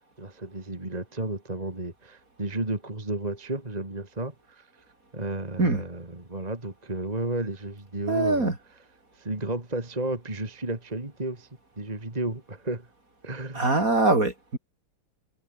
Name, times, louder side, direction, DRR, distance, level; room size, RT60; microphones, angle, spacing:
voice 1, 0.2-4.7 5.1-8.5 9.1-11.5 11.8-12.9 13.2-13.7, right 2 dB, 15° right, 3.1 m, -33 dB
voice 2, 8.1-8.5 13.5-14.6, right 2 dB, 35° right, 4.5 m, -23 dB
omnidirectional pair, 2.4 m